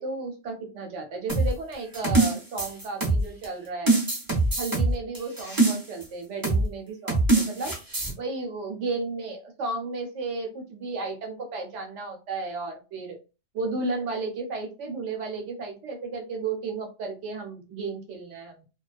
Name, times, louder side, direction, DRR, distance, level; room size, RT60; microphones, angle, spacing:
voice 1, 0.0-4.0 4.6-7.7 8.2-13.2 13.5-18.6, right 3 dB, 75° right, 3 dB, 1.1 m, -33 dB
sound 1, 1.3-3.5 3.9-6.0 6.4-6.7 7.1-8.1, right 2 dB, 25° right, 0.5 m, -23 dB
2.3 x 2.2 x 2.4 m, 0.30 s
omnidirectional pair, 1.3 m